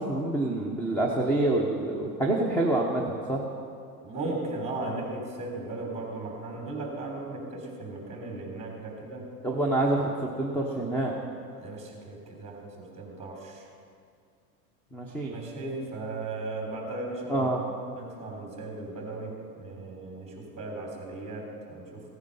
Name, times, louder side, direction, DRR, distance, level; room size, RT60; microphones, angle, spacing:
voice 1, 0.0-3.4 9.4-11.1 14.9-15.4 17.3-17.6, right 2 dB, 5° left, 0 dB, 1.0 m, -27 dB
voice 2, 4.0-9.3 11.6-13.7 15.3-17.5 18.0-22.0, right 2 dB, 15° right, -1 dB, 3.7 m, -37 dB
16.5 x 9.7 x 5.6 m, 2.3 s
supercardioid pair, 145°, 46 cm